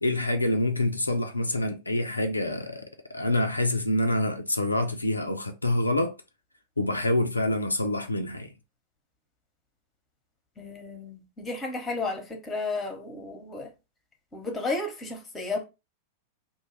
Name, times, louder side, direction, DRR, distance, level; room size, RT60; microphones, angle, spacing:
voice 1, 0.0-6.2 6.8-8.5, left 1 dB, 85° left, 0.3 m, -26 dB
voice 2, 10.6-13.7 14.3-15.6, left 3 dB, 15° left, 0.9 m, -33 dB
2.7 x 2.2 x 2.9 m
figure-of-eight pair, 90°, 0 cm